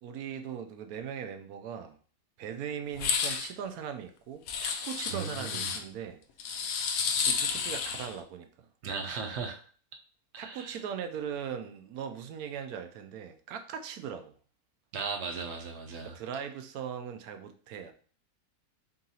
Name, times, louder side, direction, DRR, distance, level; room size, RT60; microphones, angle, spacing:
voice 1, 0.0-2.0 2.4-6.2 7.2-8.7 10.4-14.4 16.0-17.9, right 8 dB, 80° right, 7 dB, 1.1 m, -39 dB
sound 1, 2.9-3.5 4.5-5.8 6.4-8.1, left 6 dB, 75° left, 1.0 m, -31 dB
voice 2, 5.1-5.7 8.8-9.6 10.3-10.8 14.9-16.2, right 5 dB, 60° right, 4 dB, 0.8 m, -37 dB
3.9 x 3.7 x 2.8 m, 0.43 s
omnidirectional pair, 1.6 m